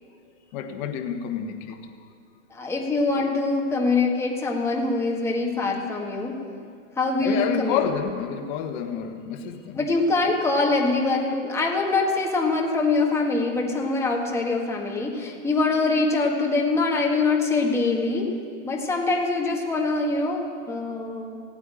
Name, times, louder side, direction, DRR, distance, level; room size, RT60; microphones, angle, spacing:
voice 1, 0.5-1.9 7.2-9.8, left 8 dB, 35° left, 5 dB, 1.5 m, -29 dB
voice 2, 2.5-6.4 7.0-7.9 9.7-18.3 18.6-21.4, left 3 dB, 5° left, -1 dB, 1.6 m, -24 dB
16.0 x 9.2 x 9.1 m, 2.3 s
hypercardioid pair, 150°, 40 cm